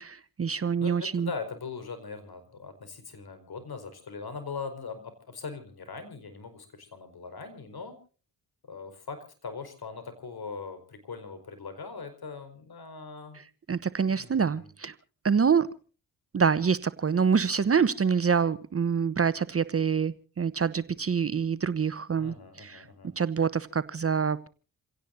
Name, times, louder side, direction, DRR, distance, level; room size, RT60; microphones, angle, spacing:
voice 1, 0.0-1.3 13.7-14.9 15.2-15.7 16.3-22.8 23.2-24.5, right 6 dB, 30° right, 16 dB, 0.9 m, -26 dB
voice 2, 0.8-8.0 8.7-13.4 14.1-14.7 22.2-23.1, left 5 dB, 55° left, 10 dB, 4.9 m, -40 dB
28.0 x 17.0 x 2.7 m, 0.37 s
hypercardioid pair, 45°, 45 cm